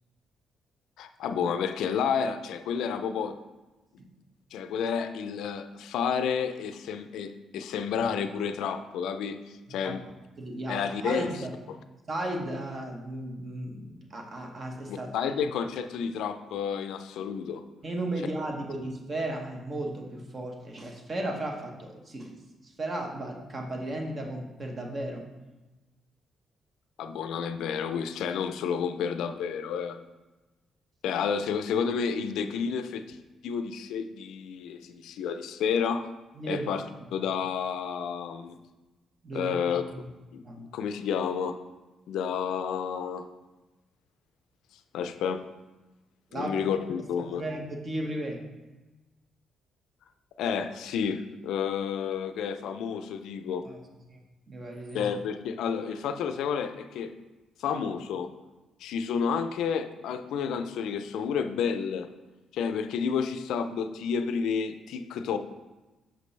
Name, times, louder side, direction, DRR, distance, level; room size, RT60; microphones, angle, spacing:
voice 1, 1.0-3.4 4.5-10.0 10.7-11.3 14.9-17.6 27.0-30.0 31.0-33.2 33.4-36.1 36.5-36.8 37.1-38.6 39.3-40.1 40.3-41.6 42.1-43.3 44.9-45.4 46.3-47.4 50.4-53.6 54.9-57.1 57.6-58.3 58.8-62.1 62.5-65.4, left 7 dB, 85° left, 9 dB, 0.4 m, -30 dB
voice 2, 10.4-11.5 12.1-15.1 17.8-25.3 36.3-36.7 39.2-39.6 40.0-40.1 40.4-40.6 46.3-46.8 47.2-48.4 53.6-53.9 54.1-54.2 54.5-55.1, right 1 dB, 40° right, 2 dB, 1.0 m, -35 dB
5.8 x 5.1 x 3.2 m, 1.1 s
cardioid pair, 90°, 0 cm